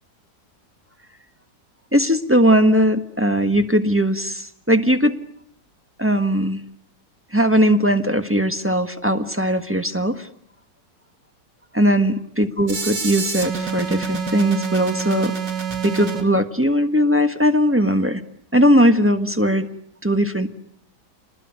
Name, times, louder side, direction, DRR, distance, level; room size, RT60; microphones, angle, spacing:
voice 1, 1.9-5.2 6.0-6.6 7.3-10.3 11.7-15.3 15.8-18.2 18.5-19.7 20.0-20.5, equal, 10° right, 7 dB, 1.2 m, -19 dB
sound 1, 12.7-16.2, right 6 dB, 85° right, 3.3 m, -27 dB
28.0 x 20.5 x 9.4 m, 0.67 s
omnidirectional pair, 1.9 m